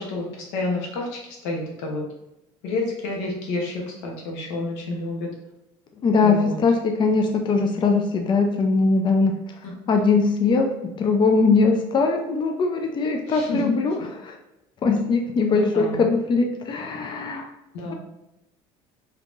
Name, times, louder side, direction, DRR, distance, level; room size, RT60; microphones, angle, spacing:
voice 1, 0.0-2.0 2.6-5.3 6.2-6.6 13.3-13.8 15.5-16.0 17.7-17.9, left 2 dB, 85° left, 0 dB, 0.9 m, -29 dB
voice 2, 6.0-9.3 9.9-14.4 14.8-17.5, left 4 dB, 35° left, 3 dB, 0.5 m, -21 dB
3.5 x 2.8 x 2.5 m, 0.89 s
supercardioid pair, 90°, 13 cm